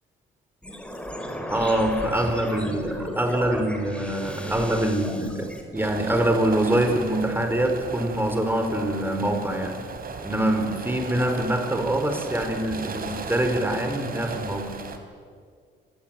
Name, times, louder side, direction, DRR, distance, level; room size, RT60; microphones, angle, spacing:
sound 1, 0.6-5.6, equal, 5° left, 4.6 m, -35 dB
voice 1, 1.5-9.8 10.2-14.8, right 1 dB, 10° right, 5 dB, 4.6 m, -25 dB
sound 2, 5.8-15.0, right 4 dB, 50° right, 3.4 m, -36 dB
25.5 x 20.0 x 9.1 m, 2.1 s
cardioid pair, 90°, 20 cm